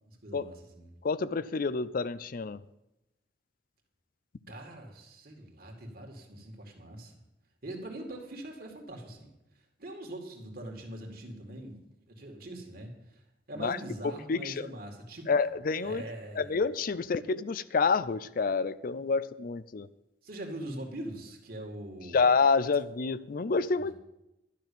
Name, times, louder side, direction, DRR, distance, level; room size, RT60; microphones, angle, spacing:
voice 1, 0.1-0.9 4.5-7.1 7.6-9.3 9.8-11.8 12.1-13.2 13.5-15.3 15.8-16.6 20.2-22.3 23.8-24.0, right 1 dB, 55° right, 2 dB, 2.2 m, -42 dB
voice 2, 1.0-2.6 13.6-13.8 14.3-14.5 15.3-16.0 16.4-19.9 22.1-23.9, left 4 dB, 50° left, 17 dB, 0.4 m, -28 dB
12.0 x 6.1 x 8.6 m, 0.92 s
head